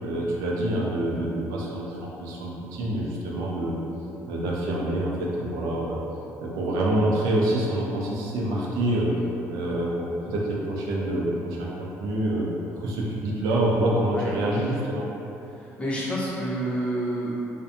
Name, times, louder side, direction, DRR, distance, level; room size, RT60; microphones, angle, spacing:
voice 1, 0.0-3.8 4.3-6.0 6.4-9.2 9.5-12.5 12.8-15.1, right 1 dB, 90° right, -3 dB, 0.4 m, -26 dB
voice 2, 15.5-17.4, right 1 dB, 20° left, -8 dB, 0.7 m, -29 dB
2.6 x 2.2 x 2.6 m, 3.0 s
cardioid pair, 115°, 6 cm